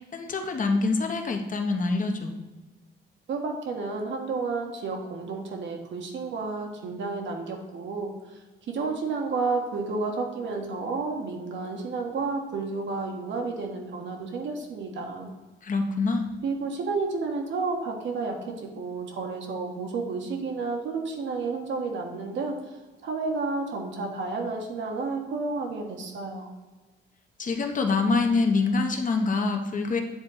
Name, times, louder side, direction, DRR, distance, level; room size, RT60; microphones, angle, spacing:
voice 1, 0.1-2.3 15.6-16.3 27.4-30.0, left 3 dB, 40° left, 4 dB, 1.1 m, -25 dB
voice 2, 3.3-8.1 8.7-15.3 16.4-22.6 23.0-26.5, right 4 dB, 70° right, 2 dB, 1.4 m, -31 dB
9.6 x 3.9 x 3.9 m, 1.2 s
cardioid pair, 90°, 20 cm